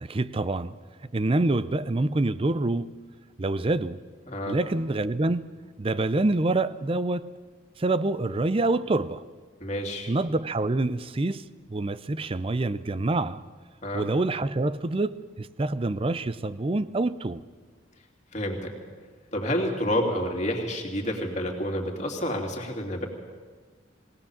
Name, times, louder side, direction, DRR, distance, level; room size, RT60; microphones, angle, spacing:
voice 1, 0.0-0.8 1.1-3.0 3.4-4.0 4.5-5.5 5.8-7.3 7.8-9.2 10.1-13.4 13.9-17.4, right 2 dB, 30° right, 0.5 m, -26 dB
voice 2, 4.3-4.6 9.6-10.1 13.8-14.1 18.3-18.7 19.3-23.1, equal, 35° left, 2.8 m, -29 dB
21.0 x 18.0 x 7.3 m
head